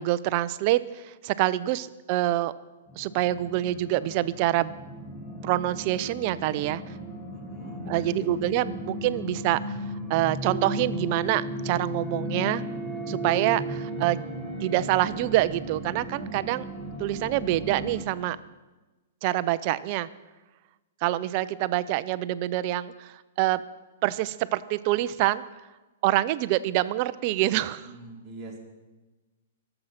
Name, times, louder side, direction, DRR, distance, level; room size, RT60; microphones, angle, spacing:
voice 1, 0.0-2.5 3.0-4.7 5.4-6.8 7.9-9.8 10.1-12.6 13.1-14.2 14.6-16.7 17.0-18.4 19.2-20.1 21.0-23.6 24.0-25.4 26.0-27.9, right 15 dB, 35° right, 15 dB, 0.5 m, -26 dB
sound 1, 2.9-18.0, equal, 15° left, 1.4 m, -35 dB
voice 2, 7.3-8.3 27.9-28.6, right 2 dB, 10° right, -6 dB, 2.4 m, -42 dB
22.5 x 7.8 x 5.8 m, 1.2 s
hypercardioid pair, 165°, 0 cm